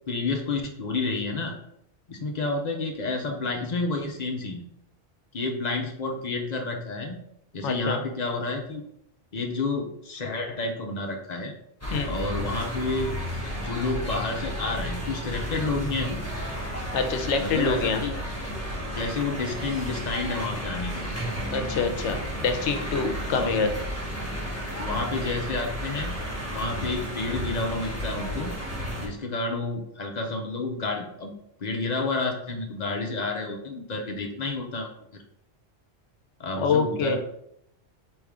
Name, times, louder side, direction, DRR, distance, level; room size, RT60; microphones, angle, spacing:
voice 1, 0.1-1.5 2.1-4.6 5.3-7.2 7.5-8.8 9.3-11.5 12.1-13.1 13.5-16.2 17.4-18.1 18.9-21.0 23.3-23.6 24.2-24.3 24.8-26.2 26.5-28.5 29.0-31.3 31.6-35.2 36.4-37.2, left 3 dB, 45° left, 2 dB, 0.7 m, -30 dB
voice 2, 7.6-8.0 11.9-12.1 16.9-18.0 21.5-23.7 36.6-37.2, left 5 dB, 80° left, 7 dB, 0.9 m, -26 dB
sound 1, 11.8-29.1, equal, 15° left, 1.1 m, -32 dB
4.7 x 3.1 x 3.6 m, 0.76 s
omnidirectional pair, 1.2 m